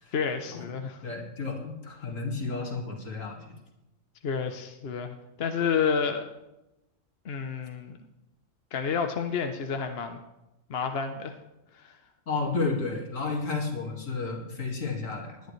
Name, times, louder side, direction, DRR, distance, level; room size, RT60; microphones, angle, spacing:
voice 1, 0.1-1.0 4.2-6.2 7.2-8.0 8.7-10.2 10.7-11.3 11.7-12.0, left 6 dB, 55° left, 6 dB, 0.9 m, -30 dB
voice 2, 1.0-3.6 12.3-15.5, left 3 dB, 70° left, 1 dB, 2.3 m, -32 dB
19.5 x 10.5 x 3.2 m, 0.93 s
omnidirectional pair, 1.4 m